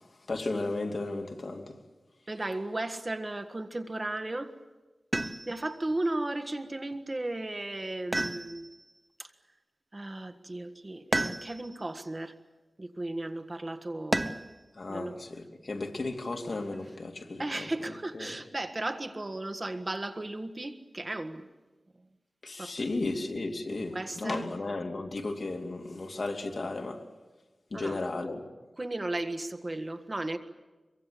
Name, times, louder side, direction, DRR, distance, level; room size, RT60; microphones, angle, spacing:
voice 1, 0.3-1.8 14.7-17.4 18.1-18.3 22.4-27.0 27.7-28.4, left 2 dB, 60° left, 2.8 m, -34 dB
voice 2, 2.3-4.6 5.5-8.7 9.2-9.3 9.9-12.4 12.8-14.4 14.9-15.2 17.4-21.5 22.6-22.9 23.7-24.5 27.7-28.0 28.7-30.4, right 2 dB, 35° right, 1.6 m, -35 dB
sound 1, 5.1-5.8 8.1-8.9 11.1-11.8 14.1-14.6 16.3-17.0, right 1 dB, 20° right, 0.9 m, -32 dB
25.0 x 23.5 x 8.5 m
wide cardioid pair, 80°, 0 cm